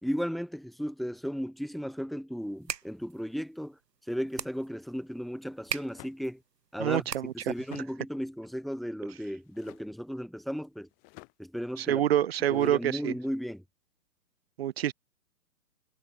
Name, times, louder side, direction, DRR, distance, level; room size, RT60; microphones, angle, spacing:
voice 1, 0.0-3.8 4.1-6.4 6.7-7.0 7.5-10.9 11.4-12.0 12.5-13.6, equal, ahead, 3.1 m, -35 dB
sound 1, 2.4-7.6, right 7 dB, 80° right, 2.8 m, -41 dB
sound 2, 5.9-6.2 7.3-7.9 9.4-9.9 10.8-11.3 12.4-12.8, left 32 dB, 20° left, 3.6 m, -52 dB
voice 2, 6.8-7.8 11.8-13.1 14.6-14.9, right 11 dB, 40° right, 4.6 m, -27 dB
hypercardioid pair, 170°, 48 cm